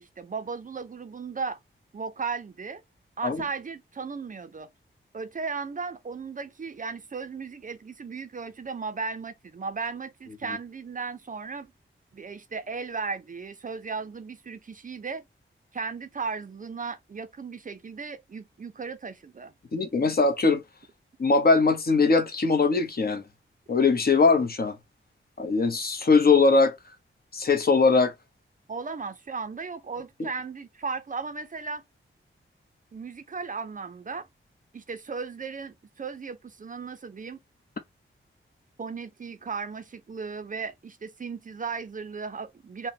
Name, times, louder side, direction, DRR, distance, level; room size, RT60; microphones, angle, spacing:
voice 1, 0.0-1.6 1.9-2.8 3.2-4.7 5.1-11.7 12.1-15.2 15.7-19.5 28.7-31.8 32.9-34.3 34.7-37.4 38.8-42.9, right 5 dB, 40° right, 0.5 m, -36 dB
voice 2, 19.7-20.6 21.2-23.2 23.7-24.8 25.4-26.7 27.3-28.1, left 4 dB, 45° left, 0.8 m, -21 dB
5.7 x 2.1 x 2.7 m
wide cardioid pair, 145°, 21 cm